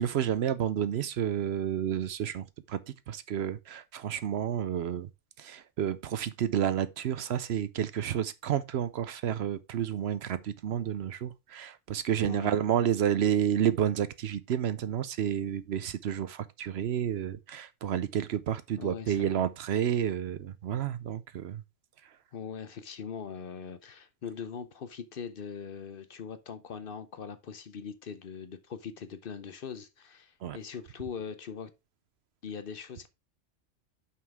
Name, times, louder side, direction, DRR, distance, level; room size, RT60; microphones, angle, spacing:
voice 1, 0.0-2.8 3.1-5.1 5.4-21.6 30.4-30.6, right 9 dB, 65° right, 0.8 m, -30 dB
voice 2, 12.2-12.5 18.8-19.4 22.3-31.7 32.4-33.1, left 6 dB, 55° left, 0.8 m, -41 dB
5.7 x 5.5 x 4.6 m
omnidirectional pair, 1.2 m